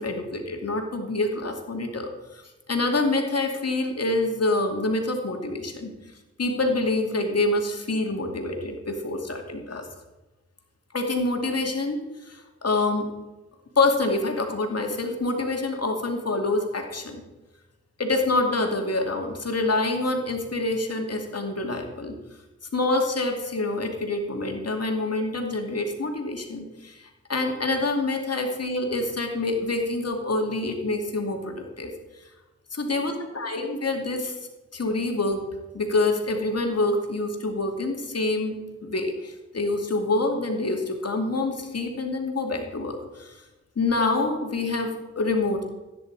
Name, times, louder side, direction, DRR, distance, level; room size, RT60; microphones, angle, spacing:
voice 1, 0.0-2.4 2.7-5.9 6.4-9.8 10.9-13.1 13.8-17.2 18.0-22.1 22.7-31.9 32.7-34.4 34.7-35.5 35.7-43.3 43.8-45.7, left 2 dB, 55° left, 3 dB, 2.5 m, -26 dB
15.5 x 9.4 x 4.8 m, 1.1 s
cardioid pair, 40°, 29 cm